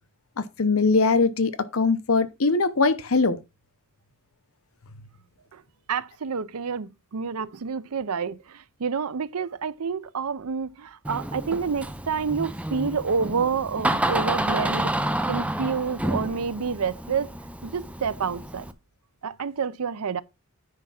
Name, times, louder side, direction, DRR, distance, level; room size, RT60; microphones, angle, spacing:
voice 1, 0.6-3.4, left 4 dB, 70° left, 0.9 m, -21 dB
voice 2, 5.9-17.3 17.6-18.7 19.2-20.2, right 6 dB, 85° right, 0.6 m, -29 dB
Door, 11.0-18.7, right 1 dB, 5° right, 0.6 m, -29 dB
9.6 x 3.5 x 5.8 m
head